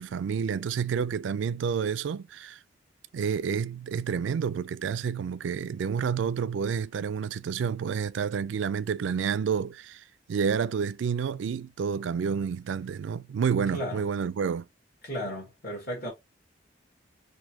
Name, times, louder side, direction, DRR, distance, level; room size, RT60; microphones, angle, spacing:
voice 1, 0.0-2.6 3.1-14.7, right 6 dB, 70° right, 0.3 m, -29 dB
voice 2, 13.7-14.0 15.0-16.1, equal, 55° left, 1.3 m, -34 dB
4.2 x 2.5 x 2.7 m
head